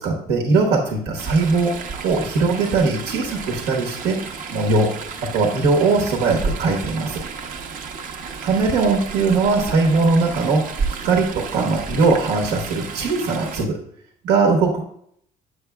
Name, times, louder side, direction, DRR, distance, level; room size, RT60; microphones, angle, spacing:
voice 1, 0.0-1.7 2.0-4.2 4.5-4.9 5.3-7.2 8.4-10.6 11.0-13.8 14.2-14.8, right 3 dB, 90° right, 0 dB, 1.2 m, -20 dB
Chatter / Stream, 1.2-13.6, right 5 dB, 55° right, 0.8 m, -32 dB
8.0 x 6.7 x 2.3 m, 0.68 s
cardioid pair, 110°, 17 cm